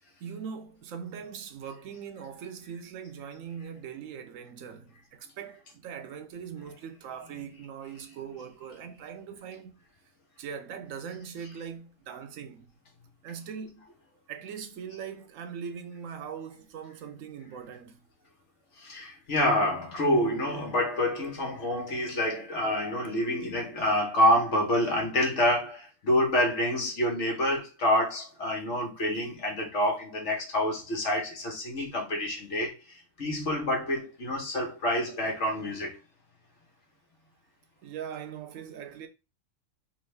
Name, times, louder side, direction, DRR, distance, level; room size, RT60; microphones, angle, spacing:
voice 1, 0.2-9.8 10.4-12.7 13.2-13.9 14.3-18.0 37.8-39.1, right 7 dB, 85° right, 1.0 m, -41 dB
voice 2, 18.8-36.0, left 1 dB, 65° left, 1.5 m, -27 dB
3.5 x 2.6 x 3.3 m
omnidirectional pair, 1.3 m